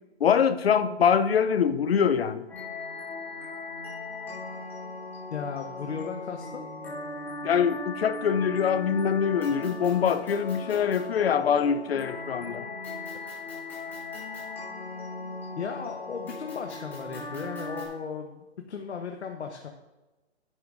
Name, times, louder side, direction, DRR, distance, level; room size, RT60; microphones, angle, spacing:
voice 1, 0.2-2.5 7.4-12.7, left 7 dB, 60° left, 0.7 m, -24 dB
sound 1, 2.5-17.8, left 2 dB, 5° left, 2.0 m, -38 dB
voice 2, 5.3-6.7 15.6-19.7, left 6 dB, 75° left, 1.1 m, -36 dB
10.5 x 10.0 x 2.6 m
hypercardioid pair, 170°, 34 cm